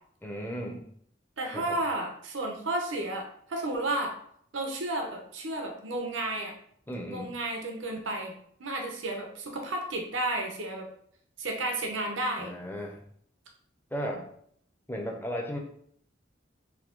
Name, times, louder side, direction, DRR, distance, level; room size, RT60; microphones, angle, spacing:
voice 1, 0.2-0.8 1.5-1.8 6.9-7.3 12.4-13.0 13.9-14.2 14.9-15.6, equal, 10° left, 1 dB, 0.7 m, -35 dB
voice 2, 1.4-4.1 4.5-6.5 7.1-8.3 8.6-10.9 11.4-12.5 14.0-14.2, right 2 dB, 85° right, 2 dB, 0.8 m, -32 dB
4.7 x 2.7 x 3.7 m, 0.65 s
head